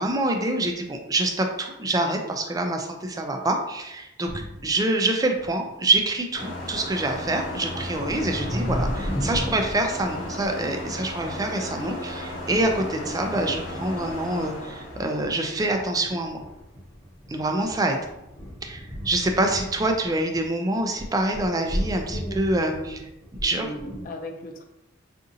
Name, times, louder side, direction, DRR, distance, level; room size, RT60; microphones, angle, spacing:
voice 1, 0.0-4.3 4.6-16.4 17.3-18.0 18.6-23.0 23.4-23.7, right 2 dB, 20° right, 3 dB, 0.3 m, -26 dB
sound 1, 4.3-4.7 5.3-6.0 6.4-14.8 15.2-20.4 20.8-24.0, equal, 15° left, 0.8 m, -35 dB
sound 2, 6.3-16.5, left 1 dB, 80° left, 1.0 m, -36 dB
voice 2, 22.6-23.0 23.6-24.6, left 1 dB, 45° left, 2 dB, 0.5 m, -37 dB
3.7 x 2.5 x 2.7 m, 0.91 s
head